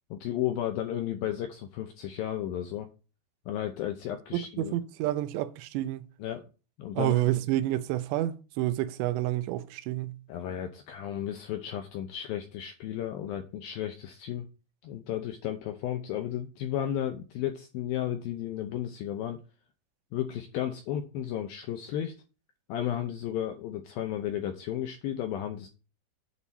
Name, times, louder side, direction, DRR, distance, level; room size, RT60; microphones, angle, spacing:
voice 1, 0.1-2.9 3.5-4.7 6.2-6.4 6.8-7.1 10.3-14.5 14.8-19.4 20.1-22.1 22.7-25.7, left 11 dB, 80° left, 2.1 m, -33 dB
voice 2, 4.3-6.0 7.0-10.2, right 14 dB, 85° right, 2.9 m, -29 dB
8.5 x 4.1 x 7.1 m
omnidirectional pair, 5.1 m